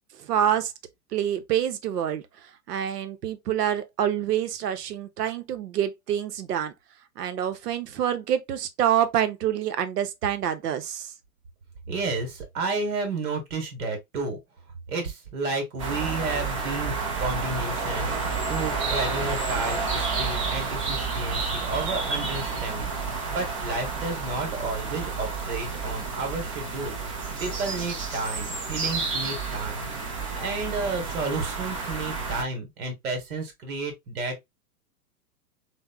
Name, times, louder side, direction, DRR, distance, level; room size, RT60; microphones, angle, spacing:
voice 1, 0.2-0.7 1.1-2.2 2.7-6.7 7.2-11.1, right 10 dB, 90° right, 0.7 m, -26 dB
voice 2, 11.9-14.4 14.9-22.9 23.3-29.9 30.1-34.4, right 3 dB, 65° right, 1.1 m, -32 dB
sound 1, 15.8-32.4, right 4 dB, 25° right, 0.3 m, -30 dB
3.5 x 2.0 x 2.2 m
hypercardioid pair, 135°, 46 cm